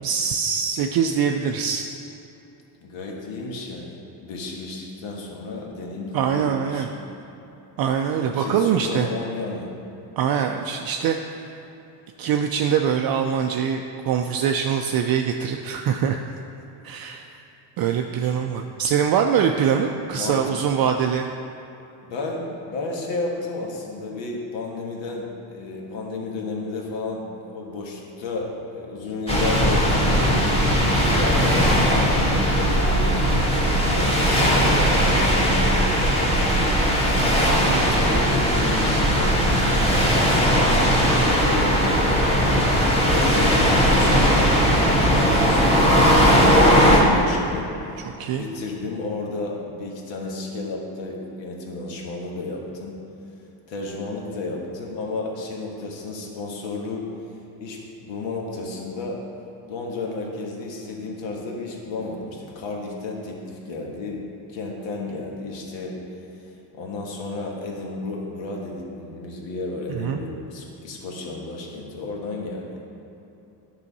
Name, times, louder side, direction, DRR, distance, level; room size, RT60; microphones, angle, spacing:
voice 1, 0.0-1.8 6.1-6.9 7.8-9.1 10.2-11.4 12.2-16.2 16.8-17.4 17.8-21.3 48.0-48.4 70.0-70.2, right 7 dB, 50° right, 4 dB, 0.5 m, -23 dB
voice 2, 2.8-7.3 8.2-9.7 18.2-18.4 19.7-20.4 22.0-36.4 36.8-42.1 42.6-48.0 48.4-53.0 53.7-57.1 57.6-59.2 59.7-64.2 64.5-66.0 66.4-72.7, left 3 dB, 65° left, -1 dB, 1.6 m, -33 dB
sound 1, 29.3-47.0, equal, 10° left, 1.7 m, -18 dB
10.0 x 5.7 x 4.1 m, 2.9 s
cardioid pair, 115°, 49 cm